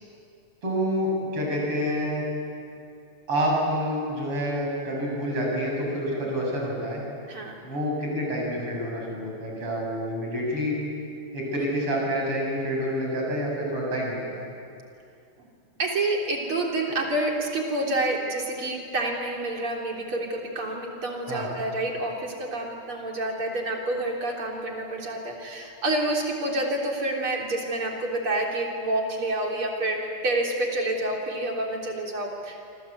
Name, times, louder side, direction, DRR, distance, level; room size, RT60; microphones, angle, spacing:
voice 1, 0.6-2.3 3.3-7.0 7.6-10.8 11.3-14.5 21.3-21.5, equal, 90° right, -2 dB, 8.5 m, -28 dB
voice 2, 15.8-32.6, right 2 dB, 70° right, 0 dB, 4.5 m, -28 dB
27.0 x 26.0 x 8.3 m, 2.5 s
omnidirectional pair, 2.4 m